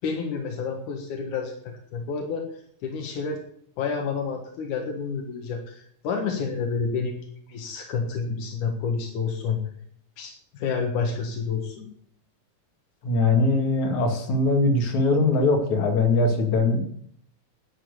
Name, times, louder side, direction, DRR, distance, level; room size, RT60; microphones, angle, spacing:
voice 1, 0.0-1.5 1.9-2.5 2.8-3.4 3.8-7.1 7.5-9.6 10.2-11.9, left 5 dB, 90° left, 2 dB, 3.1 m, -29 dB
voice 2, 13.0-16.8, left 3 dB, 70° left, 2 dB, 3.6 m, -21 dB
11.0 x 8.7 x 8.3 m, 0.64 s
omnidirectional pair, 3.4 m